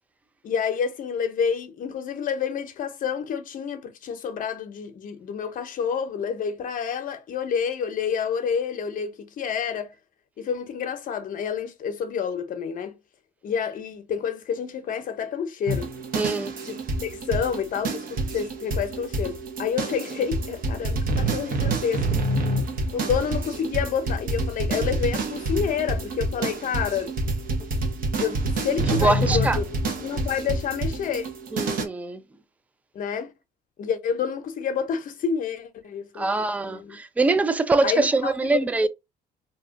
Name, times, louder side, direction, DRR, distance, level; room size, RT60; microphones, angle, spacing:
voice 1, 0.4-9.9 10.4-13.0 13.4-15.9 17.0-22.2 22.9-27.1 28.2-29.6 30.0-31.3 32.9-33.3 33.8-36.3 36.6-37.0 37.8-38.6, left 7 dB, 55° left, 0.8 m, -28 dB
sound 1, 15.7-31.8, right 2 dB, 55° right, 1.1 m, -27 dB
voice 2, 16.1-16.5 28.9-29.6 31.5-32.2 36.1-38.9, right 3 dB, 10° right, 0.4 m, -23 dB
2.8 x 2.4 x 3.6 m
cardioid pair, 110°, 17 cm